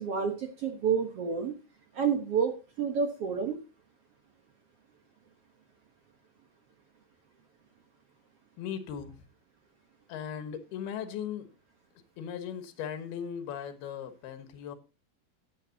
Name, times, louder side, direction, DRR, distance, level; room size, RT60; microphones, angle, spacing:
voice 1, 0.0-1.5 1.9-3.6, right 6 dB, 70° right, 4 dB, 1.4 m, -29 dB
voice 2, 8.6-9.2 10.1-11.5 12.2-14.8, left 8 dB, 80° left, 9 dB, 3.3 m, -38 dB
16.5 x 8.7 x 2.8 m, 0.29 s
omnidirectional pair, 4.5 m